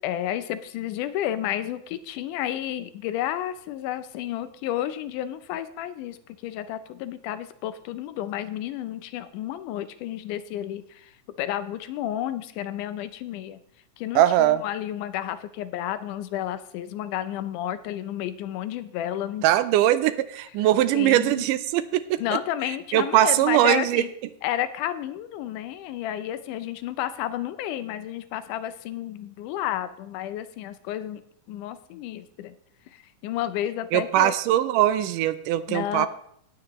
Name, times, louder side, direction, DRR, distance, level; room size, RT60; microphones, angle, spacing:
voice 1, 0.0-13.6 14.0-19.4 20.6-20.7 20.9-21.5 22.2-24.1 24.4-31.2 31.5-32.6 32.9-34.4 35.7-36.1, left 12 dB, 80° left, 12 dB, 2.1 m, -31 dB
voice 2, 14.2-14.6 19.4-22.2 22.9-24.0 33.9-36.1, right 13 dB, 85° right, 13 dB, 2.1 m, -21 dB
16.5 x 9.3 x 3.0 m, 0.70 s
omnidirectional pair, 3.7 m